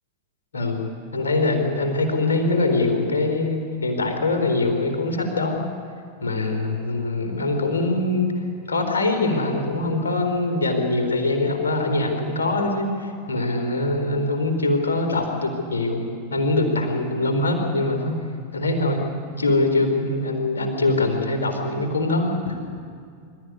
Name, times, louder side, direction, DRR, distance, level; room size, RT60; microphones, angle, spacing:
voice 1, 1.1-5.6 6.2-8.3 8.7-18.1 18.5-19.0 19.4-22.6, left 2 dB, 70° left, 4 dB, 4.0 m, -23 dB
25.5 x 13.5 x 9.8 m, 2.3 s
figure-of-eight pair, 90°, 0 cm